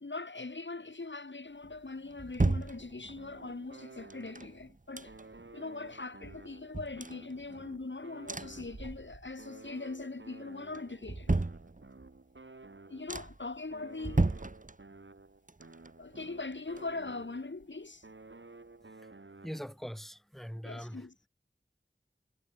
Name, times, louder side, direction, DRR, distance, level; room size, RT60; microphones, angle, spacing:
voice 1, 0.0-5.1 5.5-11.3 12.9-14.3 16.0-18.1 20.7-21.1, left 3 dB, 75° left, 1.7 m, -41 dB
sound 1, 1.6-3.4 4.1-5.5 5.9-6.0 6.2-7.8 8.3-9.4 9.8-10.3 10.7-12.2 12.6-12.7 13.1-13.6 14.0-15.2 15.5-17.3 17.6-17.7, right 2 dB, 45° right, 1.1 m, -35 dB
sound 2, 3.2-4.7 5.0-9.0 9.4-13.3 13.7-17.6 18.0-19.9, right 3 dB, 85° right, 3.1 m, -53 dB
voice 2, 19.4-21.1, equal, ahead, 3.4 m, -42 dB
wide cardioid pair, 40°, 19 cm